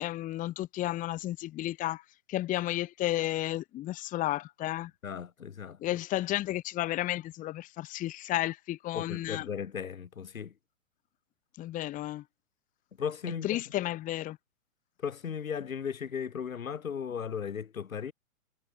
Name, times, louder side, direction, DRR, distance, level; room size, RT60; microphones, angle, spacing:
voice 1, 0.0-2.0 2.3-4.9 5.8-9.5 11.6-12.2 13.4-14.4, left 15 dB, 20° left, 1.4 m, -32 dB
voice 2, 5.0-6.0 8.9-10.5 13.0-13.6 15.0-18.1, left 7 dB, 80° left, 5.6 m, -36 dB
hypercardioid pair, 140°, 40 cm